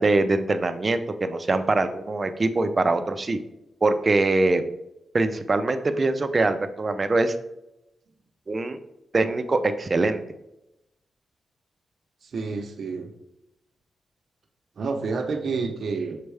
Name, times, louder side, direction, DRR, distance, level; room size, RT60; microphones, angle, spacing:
voice 1, 0.0-3.4 3.8-4.6 5.1-7.3 8.5-8.8 9.1-10.2, right 2 dB, 35° right, 9 dB, 0.6 m, -23 dB
voice 2, 12.2-13.1 14.8-16.2, right 4 dB, 65° right, 4 dB, 0.9 m, -29 dB
6.6 x 4.5 x 3.3 m, 0.88 s
cardioid pair, 95°, 0 cm